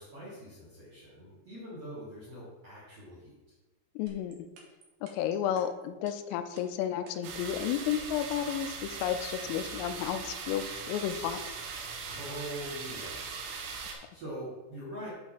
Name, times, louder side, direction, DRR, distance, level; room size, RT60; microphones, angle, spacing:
voice 1, 0.0-3.3 12.1-15.1, right 1 dB, 45° right, -8 dB, 2.2 m, -43 dB
voice 2, 4.0-4.5 5.0-11.4, left 10 dB, 85° left, 9 dB, 3.2 m, -32 dB
sound 1, 4.1-7.8, right 4 dB, 65° right, 2.6 m, -52 dB
sound 2, 7.2-13.9, right 5 dB, 85° right, 3.6 m, -40 dB
11.0 x 4.5 x 4.1 m, 1.1 s
omnidirectional pair, 5.8 m